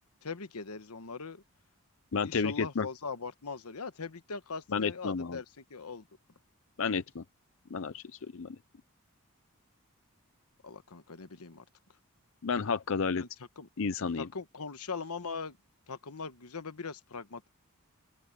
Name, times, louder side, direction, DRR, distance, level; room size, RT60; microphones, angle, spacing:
voice 1, 0.2-1.4 2.2-6.1 10.6-11.6 13.2-13.3 13.6-13.7 14.2-15.6 15.9-17.5, left 4 dB, 90° left, 1.2 m, -40 dB
voice 2, 2.1-2.9 4.7-5.4 6.8-7.2 7.7-8.6 12.4-13.2 13.8-14.3, left 5 dB, 60° left, 0.6 m, -31 dB
open air
head